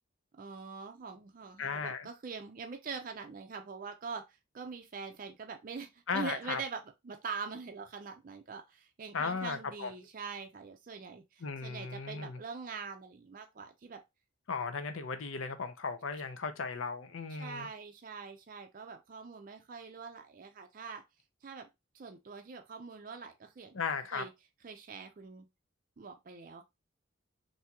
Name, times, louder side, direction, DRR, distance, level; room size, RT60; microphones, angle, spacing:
voice 1, 0.3-14.0 17.3-21.0 21.4-21.7 21.9-23.8 24.1-24.3 24.6-25.5 26.0-26.6, right 5 dB, 40° right, 0.4 m, -44 dB
voice 2, 1.6-2.1 6.1-6.6 9.1-9.9 11.4-12.4 14.5-17.7 23.7-24.2, left 5 dB, 75° left, 0.6 m, -36 dB
3.5 x 2.7 x 2.8 m
head